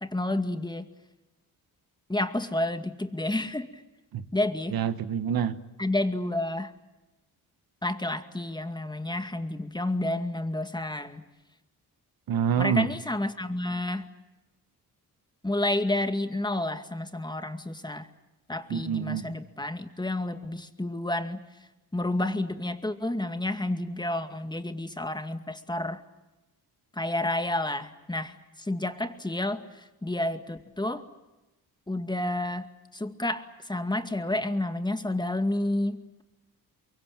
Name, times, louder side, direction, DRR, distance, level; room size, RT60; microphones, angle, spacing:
voice 1, 0.0-0.9 2.1-3.8 4.3-4.8 5.8-6.7 7.8-11.2 12.6-14.1 15.4-18.1 18.5-21.4 21.9-26.0 27.0-29.6 30.0-31.0 31.9-32.7 32.9-36.2, left 1 dB, 10° left, 2.2 m, -30 dB
voice 2, 4.7-5.6 12.3-12.9 18.7-19.3, right 8 dB, 70° right, 1.4 m, -27 dB
23.5 x 23.5 x 9.0 m
cardioid pair, 75°, 37 cm